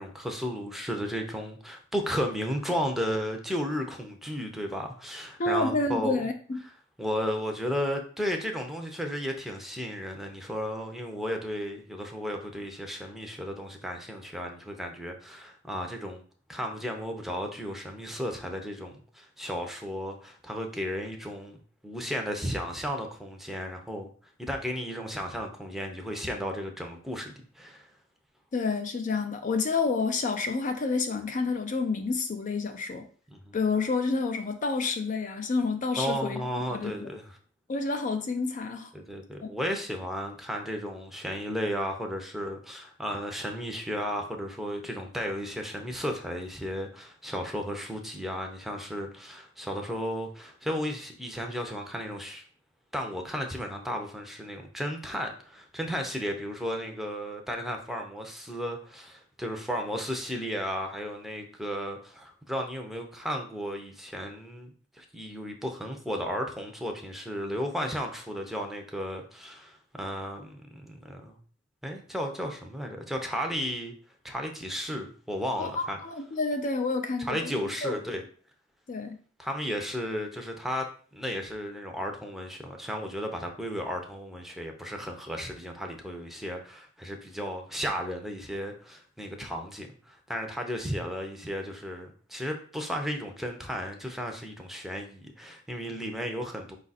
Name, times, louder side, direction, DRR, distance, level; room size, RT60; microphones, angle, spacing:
voice 1, 0.0-6.2 7.0-16.2 16.5-24.1 24.4-27.9 33.3-33.6 35.9-37.4 38.9-52.4 52.9-64.7 64.9-71.4 71.8-73.9 74.2-76.0 77.2-78.2 79.4-80.9 81.1-96.8, equal, ahead, 3 dB, 0.6 m, -34 dB
voice 2, 5.4-6.6 28.5-33.1 33.5-36.4 36.7-37.1 37.7-38.9 39.4-39.5 75.6-77.5 77.8-78.0 78.9-79.2, left 3 dB, 40° left, 6 dB, 0.4 m, -29 dB
5.0 x 2.5 x 4.0 m, 0.43 s
head